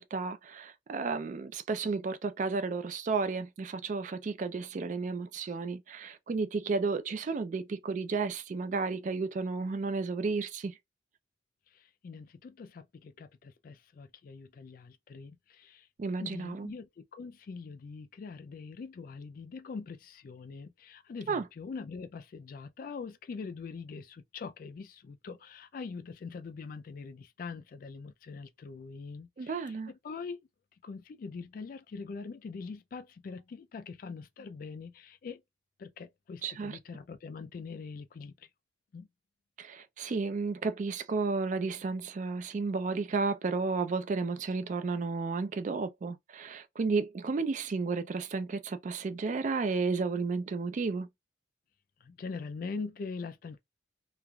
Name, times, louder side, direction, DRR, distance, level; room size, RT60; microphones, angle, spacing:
voice 1, 0.0-10.7 16.0-16.7 21.3-21.5 29.4-29.9 36.4-36.8 39.6-51.1, right 4 dB, 40° right, 0.3 m, -32 dB
voice 2, 11.7-15.9 16.2-30.4 30.8-35.4 35.8-38.3 38.9-39.1 52.0-53.6, left 4 dB, 50° left, 0.3 m, -43 dB
3.1 x 2.4 x 2.2 m
head